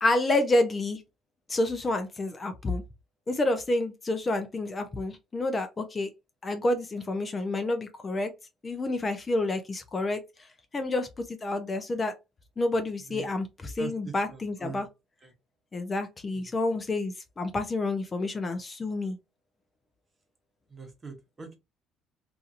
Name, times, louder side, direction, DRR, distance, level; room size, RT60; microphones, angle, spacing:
voice 1, 0.0-1.0 1.5-2.8 3.3-6.1 6.4-8.3 8.6-10.2 10.7-12.1 12.6-14.9 15.7-19.2, left 2 dB, 25° left, 0.5 m, -29 dB
voice 2, 13.8-14.8 15.2-15.3 16.4-16.5 20.7-21.6, right 4 dB, 25° right, 1.0 m, -42 dB
2.8 x 2.5 x 2.5 m
cardioid pair, 110°, 0 cm